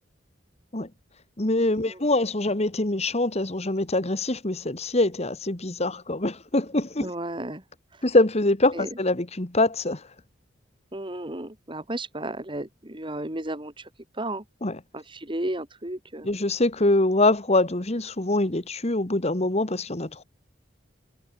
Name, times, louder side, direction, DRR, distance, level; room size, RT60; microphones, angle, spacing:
voice 1, 1.4-7.1 8.0-10.0 14.6-14.8 16.2-20.2, left 2 dB, 35° left, 1.7 m, -24 dB
voice 2, 7.0-7.6 7.9-8.0 8.7-8.9 10.9-13.9 14.1-14.4 14.9-16.3, right 1 dB, 25° right, 2.9 m, -33 dB
head